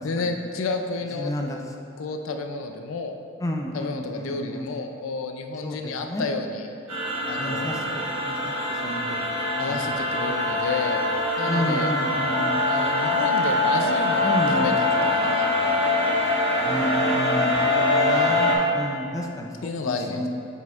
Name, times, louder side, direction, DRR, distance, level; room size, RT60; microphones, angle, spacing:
voice 1, 0.0-1.3 2.0-3.2 3.7-6.7 7.2-8.0 9.6-11.0 11.4-11.9 12.7-14.7 15.0-15.5 18.1-18.4 19.6-20.3, left 3 dB, 80° left, 5 dB, 0.4 m, -31 dB
voice 2, 1.2-1.6 3.4-4.7 5.6-6.3 7.4-9.2 9.5-9.9 10.3-10.5 11.4-12.6 14.2-14.7 16.6-20.3, left 1 dB, 15° left, 2 dB, 0.4 m, -31 dB
sound 1, 6.9-18.6, left 2 dB, 85° right, 1.3 m, -23 dB
6.8 x 6.1 x 2.4 m, 2.5 s
head